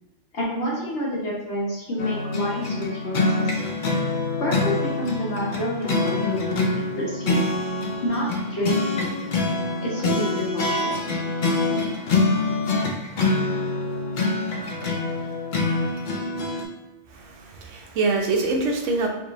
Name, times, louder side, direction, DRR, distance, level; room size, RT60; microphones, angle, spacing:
voice 1, 0.3-3.6 4.4-6.6 6.9-7.4 8.0-9.2 9.8-10.9, equal, 70° left, -5 dB, 1.4 m, -28 dB
sound 1, 2.0-16.6, left 3 dB, 55° left, 0.6 m, -25 dB
voice 2, 17.1-19.1, right 3 dB, 85° right, 2 dB, 1.0 m, -25 dB
3.6 x 3.2 x 2.6 m, 1.1 s
omnidirectional pair, 1.2 m